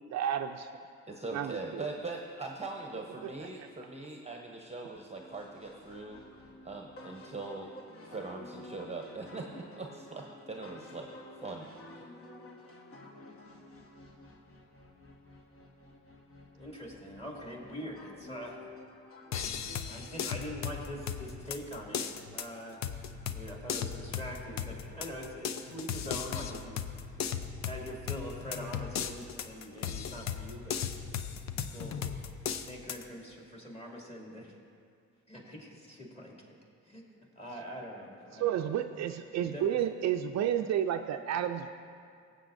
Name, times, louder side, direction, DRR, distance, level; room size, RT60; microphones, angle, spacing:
voice 1, 0.1-0.7 1.3-1.8 3.2-3.5 38.4-41.7, right 10 dB, 65° right, 7 dB, 0.5 m, -31 dB
voice 2, 1.1-6.2 6.6-7.7 8.1-11.1 11.4-12.1, right 3 dB, 20° right, 1 dB, 0.8 m, -41 dB
sound 1, 5.1-20.2, left 1 dB, 45° left, 1.3 m, -52 dB
voice 3, 16.5-18.6 19.9-22.8 23.3-26.9 27.6-30.9 31.5-32.0 32.7-34.5 35.3-36.4 36.8-38.7 39.4-39.8, equal, 20° left, -3 dB, 2.4 m, -43 dB
sound 2, 19.3-33.0, left 8 dB, 65° left, 0.6 m, -37 dB
18.5 x 7.9 x 2.6 m, 2.2 s
cardioid pair, 90°, 30 cm